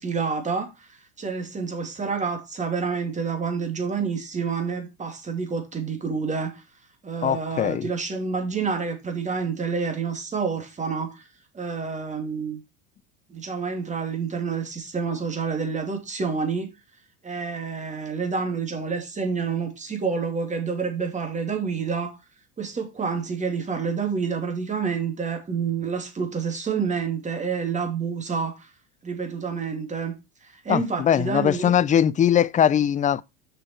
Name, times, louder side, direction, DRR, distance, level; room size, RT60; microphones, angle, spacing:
voice 1, 0.0-6.6 7.0-11.3 11.5-12.6 13.3-16.7 17.2-22.2 22.6-28.7 29.0-30.1 30.4-31.7, right 5 dB, 25° right, 2.7 m, -28 dB
voice 2, 7.2-7.9 30.7-33.2, left 9 dB, 25° left, 0.5 m, -21 dB
6.8 x 6.3 x 4.4 m
hypercardioid pair, 95°, 31 cm